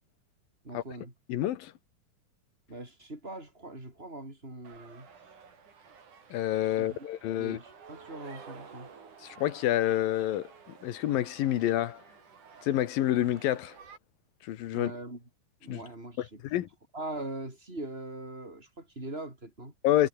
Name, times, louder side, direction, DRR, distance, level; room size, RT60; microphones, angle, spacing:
voice 1, 0.6-1.1 2.7-5.1 6.8-7.0 7.4-8.9 14.7-15.2 15.6-16.4 16.9-19.7, right 2 dB, 15° right, 7.1 m, -41 dB
voice 2, 1.3-1.7 6.3-7.6 9.2-10.5 10.8-12.0 12.6-13.7 14.4-14.9 15.7-15.8 16.2-16.7 19.8-20.1, left 13 dB, 75° left, 3.1 m, -28 dB
sound 1, 4.6-14.0, right 6 dB, 60° right, 5.3 m, -52 dB
omnidirectional pair, 4.1 m